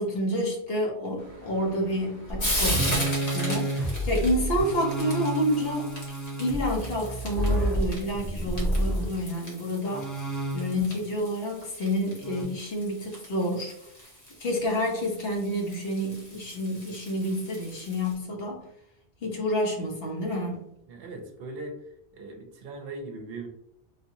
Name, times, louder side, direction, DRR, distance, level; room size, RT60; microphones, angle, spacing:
voice 1, 0.0-5.9 6.4-10.1 10.5-13.7 14.4-18.6 19.2-20.6, equal, 70° left, -1 dB, 1.1 m, -29 dB
Frying (food), 1.2-18.1, equal, 40° left, 1.1 m, -38 dB
sound 1, 2.3-9.1 9.9-10.9 12.2-12.4, right 1 dB, ahead, 0.7 m, -29 dB
voice 2, 20.9-21.9 22.1-23.5, right 2 dB, 65° right, 2 dB, 0.8 m, -39 dB
3.4 x 2.8 x 2.6 m, 0.80 s
omnidirectional pair, 1.1 m